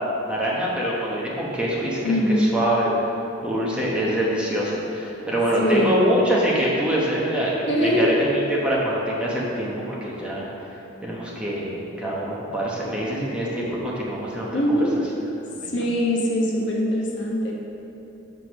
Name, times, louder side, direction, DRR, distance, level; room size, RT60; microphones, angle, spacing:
voice 1, 0.3-2.0 2.4-2.9 3.4-10.4 11.0-14.8 15.6-15.7, equal, 5° right, -6 dB, 1.0 m, -25 dB
voice 2, 2.0-2.5 5.6-6.0 7.7-8.1 14.5-14.9 15.6-17.5, equal, 65° left, -2 dB, 1.1 m, -22 dB
5.9 x 4.9 x 6.1 m, 3.0 s
head